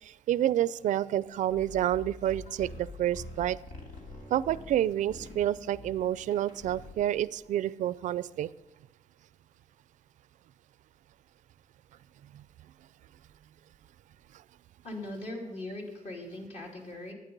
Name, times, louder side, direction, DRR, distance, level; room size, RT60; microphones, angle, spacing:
voice 1, 0.0-3.6 4.3-8.5 12.3-12.4, right 12 dB, 70° right, 18 dB, 0.4 m, -29 dB
sound 1, 1.5-7.2, left 2 dB, 85° left, 2.9 m, -46 dB
voice 2, 14.8-17.1, left 1 dB, 50° left, 0 dB, 2.7 m, -40 dB
11.5 x 9.1 x 5.3 m, 0.99 s
cardioid pair, 120°, 13 cm